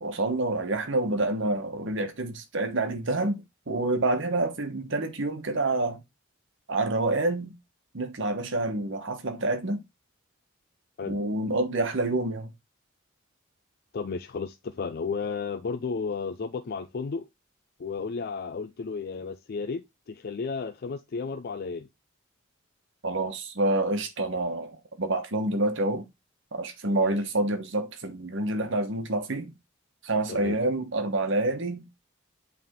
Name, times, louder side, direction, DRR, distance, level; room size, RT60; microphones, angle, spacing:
voice 1, 0.0-6.0 6.7-7.5 7.9-9.8 11.1-12.5 23.0-26.1 26.5-29.5 30.0-31.9, right 2 dB, 65° right, 1.2 m, -28 dB
voice 2, 13.9-17.3 17.8-21.9 27.0-27.1 30.3-30.6, left 5 dB, 50° left, 0.4 m, -33 dB
8.3 x 3.5 x 3.6 m
head